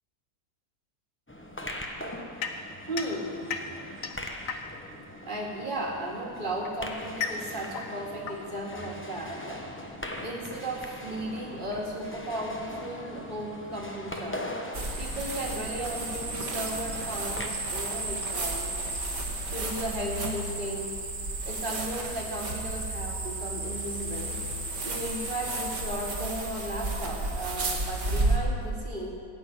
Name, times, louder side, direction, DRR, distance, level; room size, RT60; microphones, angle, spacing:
sound 1, 1.3-17.5, left 1 dB, 10° left, 0.7 m, -41 dB
sound 2, 2.4-5.0 6.0-9.4, left 5 dB, 65° left, 1.3 m, -37 dB
voice 1, 2.9-3.4 5.2-9.6 10.2-14.5 15.0-18.7 19.5-21.0 21.4-24.4 24.8-29.1, right 1 dB, 35° right, -2 dB, 2.3 m, -35 dB
sound 3, 14.7-28.4, right 2 dB, 50° right, 2.1 m, -32 dB
17.5 x 6.2 x 9.3 m, 2.3 s
omnidirectional pair, 1.6 m